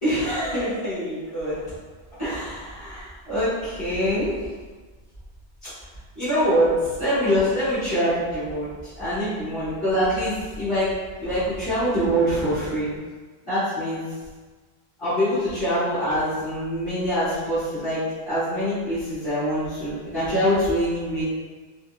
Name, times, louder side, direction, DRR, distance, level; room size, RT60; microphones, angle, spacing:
voice 1, 0.0-1.6 2.2-4.5 5.6-5.7 6.1-12.9 13.4-14.0 15.0-21.2, equal, 30° left, -18 dB, 1.5 m, -24 dB
3.9 x 2.0 x 2.4 m, 1.4 s
omnidirectional pair, 1.1 m